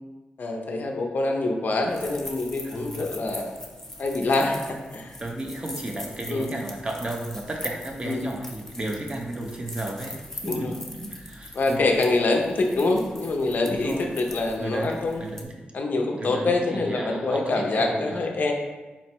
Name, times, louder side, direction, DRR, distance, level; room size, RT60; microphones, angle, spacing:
voice 1, 0.4-3.5 4.0-5.2 6.3-6.5 8.0-8.3 10.4-10.7 11.5-15.3 15.7-18.5, left 2 dB, 55° left, 2 dB, 0.5 m, -25 dB
sound 1, 1.9-15.4, left 1 dB, 10° left, 0.6 m, -42 dB
voice 2, 2.6-3.1 5.2-11.8 13.6-14.1 14.6-15.7 16.2-18.2, right 1 dB, 30° right, 1 dB, 0.6 m, -34 dB
4.2 x 2.0 x 4.4 m, 1.2 s
cardioid pair, 85°, 3 cm